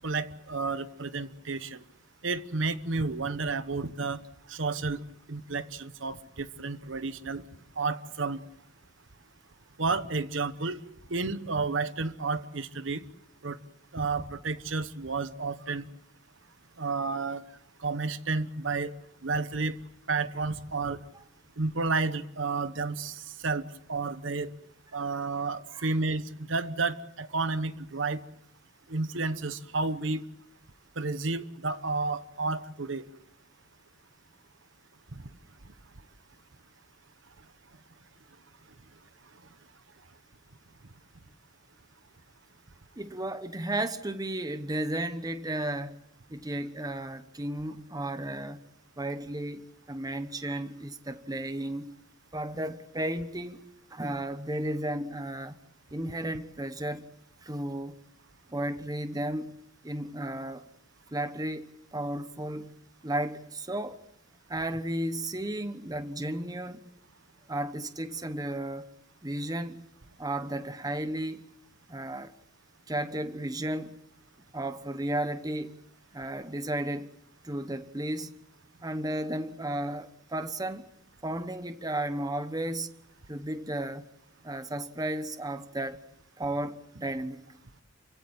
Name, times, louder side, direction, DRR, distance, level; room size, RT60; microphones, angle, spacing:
voice 1, 0.0-1.8 2.2-4.2 4.5-5.0 5.3-7.4 7.8-8.4 9.8-10.8 11.1-13.0 13.4-13.6 13.9-15.9 16.8-17.4 17.8-18.9 19.2-19.8 20.1-21.0 21.6-24.5 24.9-28.2 28.9-30.2 31.0-33.1 35.1-35.2, right 3 dB, 70° right, 1.1 m, -31 dB
voice 2, 43.0-46.0 46.3-48.6 49.0-52.0 52.3-53.6 53.9-55.5 55.9-57.1 57.4-58.0 58.5-59.6 59.8-60.6 61.1-64.0 64.5-66.8 67.5-68.9 69.2-69.9 70.2-71.5 71.9-72.3 72.9-74.0 74.5-75.9 76.1-77.1 77.4-78.4 78.8-80.9 81.2-82.9 83.3-84.0 84.4-86.0 86.4-87.4, right 1 dB, 20° right, 1.1 m, -34 dB
29.0 x 16.5 x 8.9 m
head